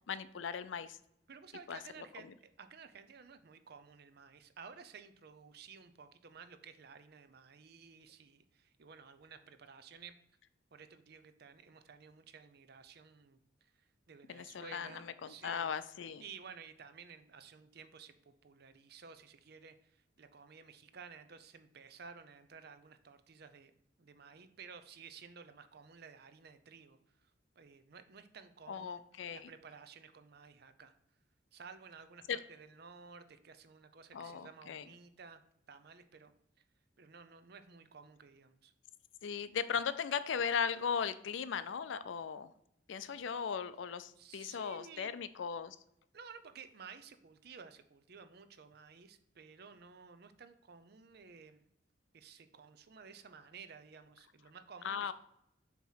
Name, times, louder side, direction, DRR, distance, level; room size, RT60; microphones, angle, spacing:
voice 1, 0.1-1.0 1.7-2.1 14.3-16.2 28.7-29.5 32.3-32.4 34.1-34.8 39.2-42.5 42.9-45.8 54.8-55.1, left 6 dB, 80° left, 14 dB, 0.4 m, -38 dB
voice 2, 1.3-10.2 10.7-15.7 16.2-23.7 24.0-29.0 29.3-30.9 31.5-35.4 35.7-36.3 36.6-36.7 37.0-38.7 43.3-43.5 44.2-45.1 46.1-51.7 52.1-55.1, right 5 dB, 55° right, 10 dB, 0.6 m, -54 dB
7.2 x 3.0 x 5.6 m, 0.77 s
head